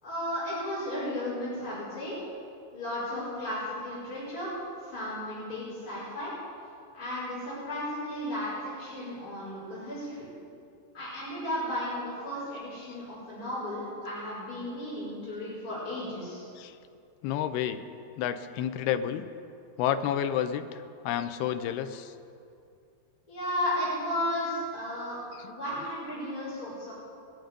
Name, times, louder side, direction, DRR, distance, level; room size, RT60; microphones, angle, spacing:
voice 1, 0.0-2.2 2.7-6.3 6.9-10.3 10.9-16.5 23.3-25.2 25.5-26.9, left 1 dB, 20° left, -11 dB, 4.8 m, -34 dB
voice 2, 17.2-17.8 18.2-19.2 19.8-22.1 25.4-25.5, left 10 dB, 90° left, 9 dB, 2.6 m, -30 dB
21.0 x 9.5 x 5.2 m, 2.5 s
omnidirectional pair, 4.5 m